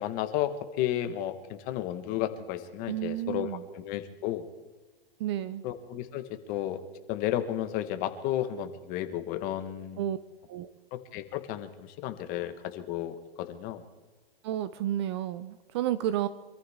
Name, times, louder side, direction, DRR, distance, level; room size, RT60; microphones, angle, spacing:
voice 1, 0.0-4.5 5.6-6.8 7.1-10.1 10.9-13.8, left 12 dB, 30° left, 8 dB, 1.4 m, -33 dB
voice 2, 2.9-3.6 5.2-5.6 10.0-10.2 10.5-10.7 14.4-16.3, right 12 dB, 30° right, 14 dB, 0.5 m, -31 dB
25.5 x 14.5 x 3.6 m, 1.2 s
hypercardioid pair, 155°, 31 cm